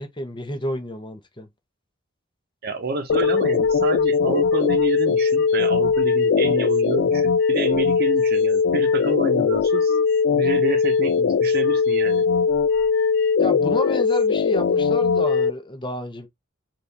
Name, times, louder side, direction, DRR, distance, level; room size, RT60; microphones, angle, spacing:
voice 1, 0.0-1.5 13.4-16.3, left 1 dB, 25° left, 0.9 m, -30 dB
voice 2, 2.6-9.9 10.3-12.3, right 2 dB, 50° right, 0.8 m, -28 dB
sound 1, 3.1-15.5, left 5 dB, 60° left, 0.3 m, -20 dB
4.4 x 2.6 x 3.4 m
head